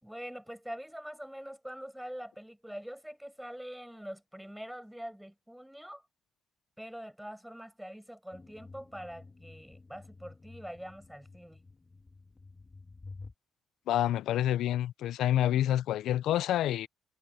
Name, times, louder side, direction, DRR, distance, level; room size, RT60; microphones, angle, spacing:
voice 1, 0.0-6.0 6.8-11.6, equal, 5° right, 5.6 m, -44 dB
sound 1, 8.3-13.3, left 3 dB, 25° left, 2.3 m, -51 dB
voice 2, 13.9-16.9, left 12 dB, 80° left, 0.5 m, -28 dB
cardioid pair, 90°, 0 cm